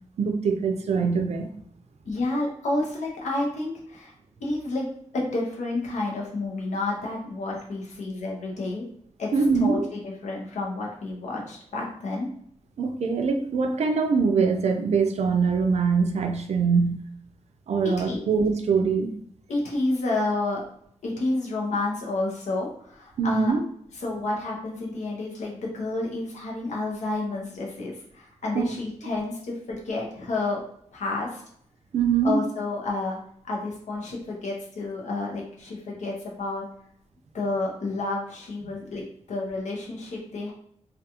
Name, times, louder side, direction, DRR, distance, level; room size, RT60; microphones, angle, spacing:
voice 1, 0.2-1.5 9.3-9.9 12.8-17.0 17.7-19.1 23.2-23.6 28.5-28.7 31.9-32.4 38.6-38.7, right 5 dB, 70° right, 6 dB, 0.4 m, -23 dB
voice 2, 2.0-4.1 4.4-8.8 9.2-9.3 9.6-12.3 17.8-18.3 19.5-20.6 21.0-23.5 24.0-30.6 30.9-31.4 32.2-33.2 33.4-36.7 37.3-40.5, left 2 dB, 90° left, -2 dB, 0.7 m, -30 dB
2.3 x 2.3 x 2.8 m, 0.67 s
cardioid pair, 70°, 12 cm